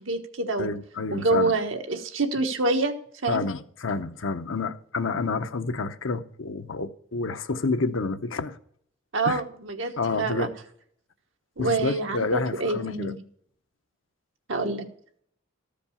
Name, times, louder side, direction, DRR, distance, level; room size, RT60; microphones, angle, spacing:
voice 1, 0.0-0.7 1.1-2.9 3.2-3.4 9.1-10.5 11.6-13.2 14.5-14.9, right 3 dB, 80° right, 1.3 m, -26 dB
voice 2, 0.6-1.5 3.3-8.6 9.2-9.4 10.0-10.5 11.6-13.1, left 3 dB, 85° left, 0.8 m, -29 dB
14.0 x 5.2 x 7.0 m
head